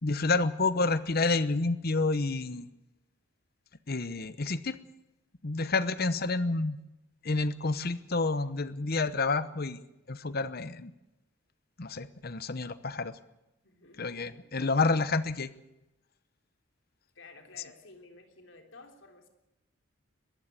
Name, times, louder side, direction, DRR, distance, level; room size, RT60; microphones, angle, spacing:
voice 1, 0.0-2.7 3.9-4.8 5.4-6.8 7.2-9.8 10.1-10.9 11.8-13.2 14.0-15.5 17.6-17.7, left 3 dB, 50° left, 14 dB, 1.0 m, -29 dB
voice 2, 13.6-14.5 17.2-19.3, left 3 dB, 70° left, 4 dB, 3.5 m, -53 dB
21.5 x 15.0 x 8.3 m, 0.92 s
head